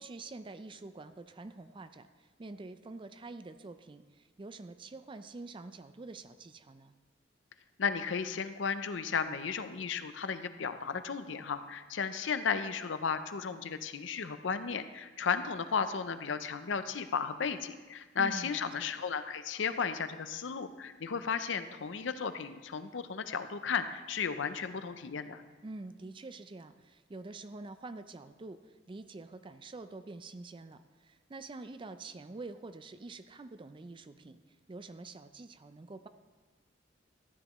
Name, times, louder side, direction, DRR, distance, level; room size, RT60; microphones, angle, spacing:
voice 1, 0.0-6.9 18.2-18.9 25.6-34.4 34.7-36.1, right 3 dB, 25° right, 11 dB, 0.4 m, -46 dB
voice 2, 7.8-25.4, left 6 dB, 75° left, 11 dB, 0.6 m, -34 dB
13.5 x 10.0 x 3.1 m, 1.3 s
head